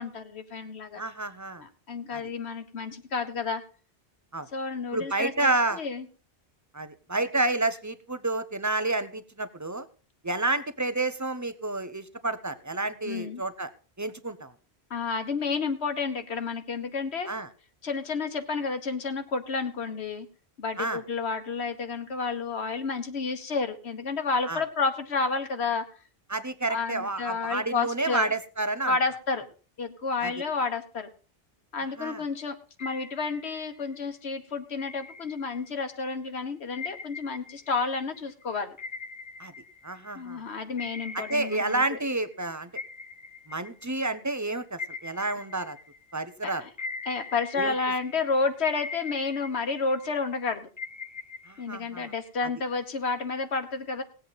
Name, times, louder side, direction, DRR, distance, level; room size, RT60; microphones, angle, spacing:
voice 1, 0.0-1.0 1.6-3.6 4.5-6.1 13.0-13.4 14.9-17.3 17.8-20.3 20.6-25.8 26.7-28.3 28.9-29.4 29.8-31.1 31.7-32.5 32.8-38.8 40.1-42.0 46.4-46.7 47.0-50.7 51.6-54.0, left 4 dB, 75° left, 8 dB, 1.5 m, -30 dB
voice 2, 1.0-1.6 2.1-2.2 4.3-4.5 4.9-5.8 6.7-9.9 10.2-13.7 14.0-14.5 17.3-17.5 20.8-21.0 24.5-24.6 26.3-28.9 30.2-30.3 32.0-32.2 39.4-39.5 39.8-40.4 41.1-42.7 43.5-45.8 46.1-46.6 47.6-47.7 51.5-52.1, right 2 dB, 20° right, 12 dB, 0.7 m, -30 dB
sound 1, 32.8-34.1 34.8-35.9 36.7-40.3 40.8-42.4 42.7-46.3 46.8-48.3 48.7-50.3 50.8-52.5, left 4 dB, 25° left, 0.5 m, -42 dB
19.0 x 8.0 x 4.0 m, 0.37 s
omnidirectional pair, 1.1 m